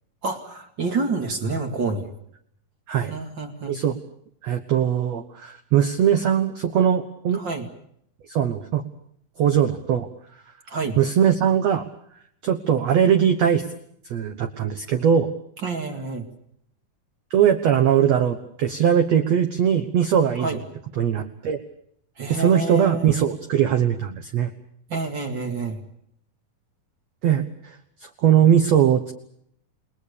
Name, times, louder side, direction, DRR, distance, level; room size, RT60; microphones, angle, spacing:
voice 1, 0.2-2.1 3.1-3.8 7.3-7.7 10.7-11.0 15.6-16.3 20.4-20.6 22.2-23.1 24.9-25.8, right 3 dB, 35° right, 5 dB, 2.4 m, -28 dB
voice 2, 4.4-7.4 8.3-8.8 9.4-10.1 11.0-11.9 12.4-13.7 14.1-15.3 17.3-20.5 21.0-21.6 22.3-24.5 27.2-29.1, right 9 dB, 60° right, 7 dB, 1.9 m, -20 dB
29.0 x 20.5 x 6.8 m, 0.70 s
omnidirectional pair, 4.2 m